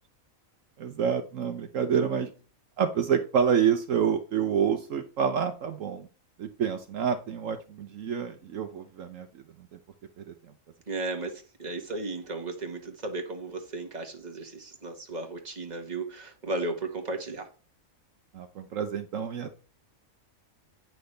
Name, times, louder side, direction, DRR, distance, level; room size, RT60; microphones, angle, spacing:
voice 1, 0.8-2.3 2.8-6.1 6.4-9.4 9.7-9.8 10.2-10.3 18.3-19.6, right 7 dB, 70° right, 1.2 m, -28 dB
voice 2, 10.9-17.5, right 2 dB, 30° right, 1.7 m, -35 dB
9.6 x 6.1 x 3.3 m
omnidirectional pair, 1.4 m